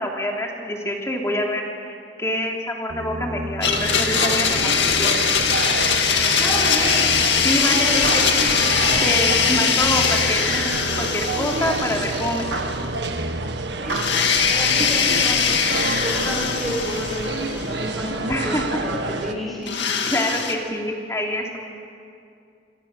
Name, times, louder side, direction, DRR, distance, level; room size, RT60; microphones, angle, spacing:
voice 1, 0.0-1.6 2.2-5.1 7.4-8.0 9.0-10.6 11.0-12.6 18.3-18.7 20.0-21.6, left 1 dB, 15° left, 0 dB, 3.2 m, -26 dB
sound 1, 2.9-13.4, right 2 dB, 50° right, 1.9 m, -34 dB
Domestic sounds home sounds, 3.6-12.8 13.0-13.1 13.9-17.8 19.7-20.5, left 6 dB, 70° left, 2.2 m, -21 dB
sound 2, 3.6-19.3, right 3 dB, 70° right, 1.7 m, -29 dB
voice 2, 6.4-7.1 7.6-8.5 13.8-14.2 14.5-19.7, equal, ahead, -5 dB, 5.1 m, -30 dB
27.0 x 26.5 x 6.7 m, 2.5 s
head